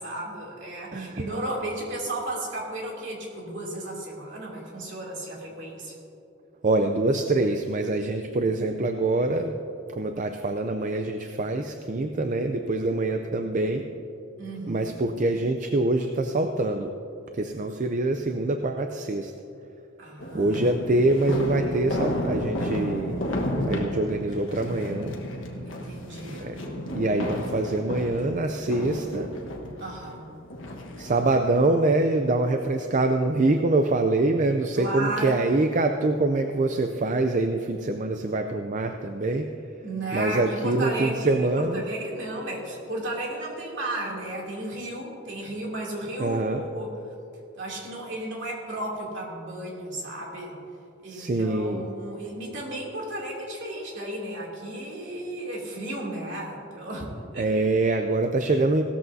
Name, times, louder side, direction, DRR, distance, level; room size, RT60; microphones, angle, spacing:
voice 1, 0.0-6.0 14.4-14.9 20.0-20.8 25.6-26.6 29.8-30.3 34.8-35.5 39.8-47.0 47.6-50.6 51.0-57.5, right 1 dB, 55° right, -3 dB, 2.8 m, -34 dB
voice 2, 0.9-1.2 6.6-9.5 9.9-13.9 14.7-16.9 17.3-19.3 20.3-23.2 23.7-25.1 26.2-29.3 31.0-39.5 40.1-41.8 46.2-46.6 51.1-51.8 57.4-58.8, right 2 dB, 35° right, 6 dB, 0.4 m, -25 dB
sound 1, 20.2-31.4, left 1 dB, 60° left, 1.4 m, -32 dB
17.5 x 13.5 x 2.7 m, 2.8 s
head